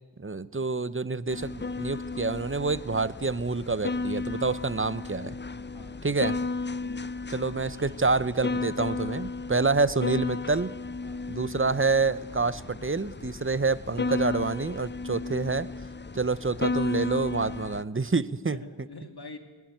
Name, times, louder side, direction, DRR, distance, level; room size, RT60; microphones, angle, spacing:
voice 1, 0.2-5.4 6.0-6.4 7.3-10.7 11.3-15.7 16.1-18.6, right 4 dB, 25° right, 16 dB, 0.7 m, -27 dB
sound 1, 1.3-17.8, left 3 dB, 25° left, 0.5 m, -34 dB
voice 2, 5.7-6.2 6.8-7.1 11.0-11.3 13.5-13.6 18.5-19.4, left 3 dB, 50° left, 5 dB, 2.5 m, -46 dB
20.5 x 16.0 x 9.2 m, 1.4 s
wide cardioid pair, 45°, 48 cm